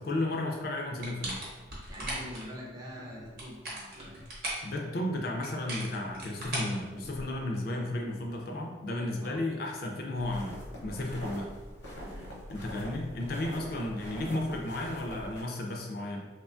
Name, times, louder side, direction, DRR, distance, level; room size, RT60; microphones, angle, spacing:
voice 1, 0.0-1.4 4.6-10.5 10.8-11.5 12.5-16.3, left 1 dB, 50° left, 1 dB, 0.3 m, -33 dB
sound 1, 1.0-2.4 3.2-4.7 5.4-7.4, right 1 dB, 50° right, 0.8 m, -38 dB
voice 2, 1.9-4.1 9.2-9.4 11.1-11.3 11.9-12.3, equal, 20° right, -3 dB, 0.4 m, -45 dB
sound 2, 1.9-2.4 2.9-3.4 3.9-4.4 4.9-5.3 5.9-6.4 6.9-7.3 8.0-8.4 8.9-9.4 9.9-10.4, equal, 80° right, 0.6 m, -51 dB
sound 3, 10.1-15.4, equal, 80° left, 0.7 m, -43 dB
3.0 x 2.2 x 2.4 m, 1.3 s
head